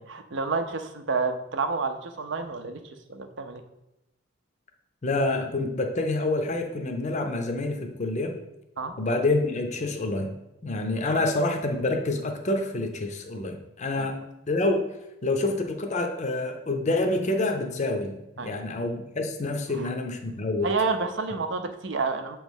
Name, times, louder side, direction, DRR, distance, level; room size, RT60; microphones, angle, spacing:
voice 1, 0.0-2.8 3.1-3.6 8.8-8.9 11.1-11.2 14.0-14.1 18.4-18.5 19.7-19.9 20.6-22.4, right 4 dB, 60° right, 7 dB, 0.6 m, -29 dB
voice 2, 5.0-8.3 9.0-10.3 10.6-14.2 14.5-14.8 15.2-20.7, left 2 dB, 35° left, 4 dB, 0.6 m, -27 dB
7.1 x 3.1 x 5.3 m, 0.93 s
head